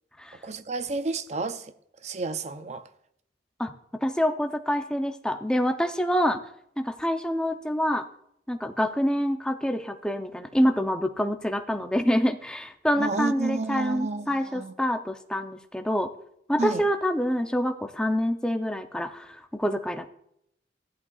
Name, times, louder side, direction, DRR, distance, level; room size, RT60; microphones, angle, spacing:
voice 1, 0.4-1.7 2.0-2.9 13.0-14.7 16.6-16.9, right 3 dB, 40° right, 0.5 m, -31 dB
voice 2, 4.0-6.4 6.8-8.1 8.5-16.1 16.5-20.1, equal, 5° left, 0.6 m, -26 dB
15.0 x 11.0 x 2.4 m
head